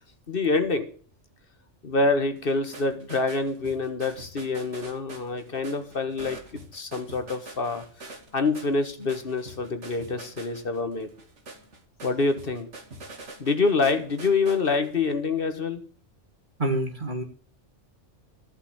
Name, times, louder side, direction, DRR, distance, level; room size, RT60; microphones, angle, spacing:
voice 1, 0.3-0.9 1.8-6.4 6.7-7.8 8.3-11.1 12.0-12.7 13.4-15.8, left 3 dB, 50° left, 8 dB, 1.6 m, -26 dB
sound 1, 2.4-15.1, right 2 dB, 75° right, 2.1 m, -45 dB
voice 2, 16.6-17.2, right 1 dB, 40° right, 3 dB, 2.2 m, -27 dB
14.0 x 5.7 x 8.7 m, 0.42 s
omnidirectional pair, 1.2 m